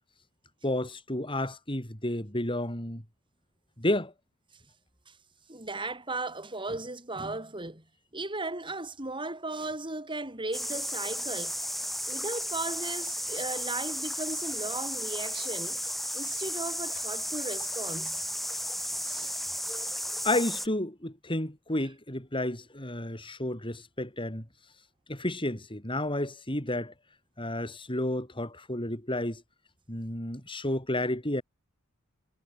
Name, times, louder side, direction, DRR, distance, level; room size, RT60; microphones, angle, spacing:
voice 1, 0.6-3.0 3.8-4.1 20.2-24.5 25.1-26.9 27.4-29.4 29.9-31.4, left 1 dB, 25° left, 6.6 m, -31 dB
voice 2, 5.5-7.8 8.1-11.5 12.1-15.8 16.1-18.3 19.0-19.4, right 2 dB, 25° right, 7.3 m, -36 dB
sound 1, 10.5-20.7, equal, ahead, 3.8 m, -34 dB
head